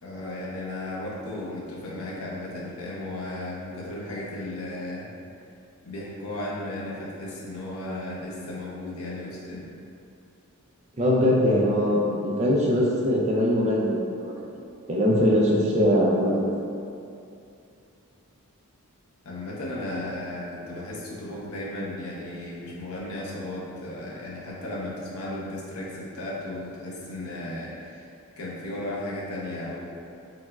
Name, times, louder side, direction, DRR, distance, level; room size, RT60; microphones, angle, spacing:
voice 1, 0.0-5.1 5.9-9.7 19.2-28.1 28.4-29.9, left 1 dB, 75° left, -4 dB, 0.6 m, -35 dB
voice 2, 11.0-14.3 14.9-16.5, equal, 30° right, -4 dB, 0.4 m, -22 dB
4.6 x 2.0 x 2.3 m, 2.6 s
head